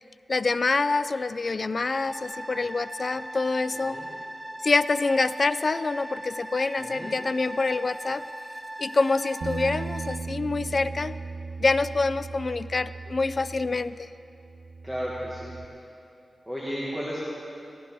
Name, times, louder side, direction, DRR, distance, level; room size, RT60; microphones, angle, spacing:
voice 1, 0.3-4.0 4.6-8.2 8.8-11.2 11.6-14.1, left 3 dB, 50° left, 15 dB, 0.3 m, -26 dB
sound 1, 1.9-10.2, right 1 dB, 15° right, 0.8 m, -39 dB
voice 2, 3.7-4.1 6.8-7.1 14.8-15.6 16.5-17.2, equal, ahead, -7 dB, 2.1 m, -34 dB
Bass guitar, 9.4-15.7, right 4 dB, 75° right, 0.3 m, -37 dB
15.5 x 12.5 x 3.8 m, 2.7 s
cardioid pair, 50°, 0 cm